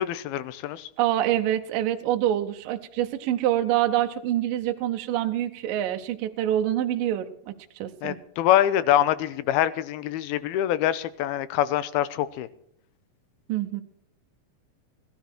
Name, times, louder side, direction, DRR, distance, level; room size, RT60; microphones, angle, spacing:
voice 1, 0.0-0.9 8.0-12.5, left 12 dB, 85° left, 15 dB, 2.7 m, -24 dB
voice 2, 1.0-8.2 13.5-13.8, right 12 dB, 75° right, 6 dB, 2.3 m, -26 dB
17.5 x 12.5 x 4.5 m, 0.71 s
omnidirectional pair, 4.4 m